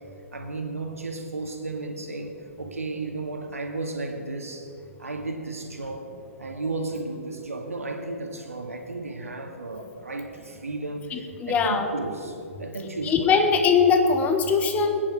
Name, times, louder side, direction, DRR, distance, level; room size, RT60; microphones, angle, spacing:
voice 1, 0.3-4.7 5.0-13.5, right 2 dB, 85° right, 3 dB, 2.1 m, -34 dB
voice 2, 11.1-11.8 13.0-15.0, left 5 dB, 20° left, 6 dB, 1.4 m, -21 dB
19.5 x 10.0 x 5.3 m, 2.6 s
figure-of-eight pair, 125°, 8 cm